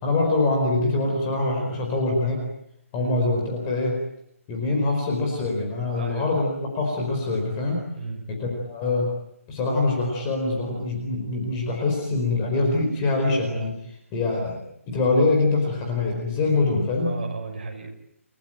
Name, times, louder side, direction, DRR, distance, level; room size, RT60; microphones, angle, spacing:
voice 1, 0.0-2.4 2.9-3.9 4.5-6.5 6.7-7.8 8.3-9.1 9.5-13.7 14.1-14.6 14.9-17.1, left 3 dB, 15° left, 1 dB, 4.7 m, -24 dB
voice 2, 6.0-6.3 8.0-8.2 17.0-17.9, right 4 dB, 40° right, 2 dB, 6.5 m, -34 dB
30.0 x 19.0 x 9.0 m, 0.79 s
hypercardioid pair, 175°, 8 cm